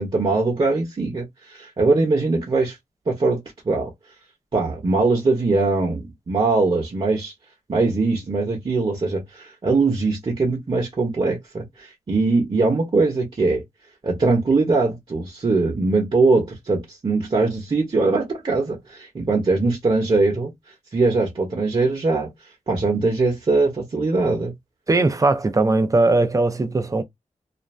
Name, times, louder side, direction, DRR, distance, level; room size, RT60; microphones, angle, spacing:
voice 1, 0.0-2.7 3.1-3.9 4.5-7.3 7.7-13.6 14.0-20.5 20.9-22.3 22.7-24.5, right 3 dB, 40° right, 1.0 m, -21 dB
voice 2, 24.9-27.0, right 2 dB, 25° right, 0.5 m, -19 dB
2.5 x 2.2 x 3.2 m
wide cardioid pair, 130°, 13 cm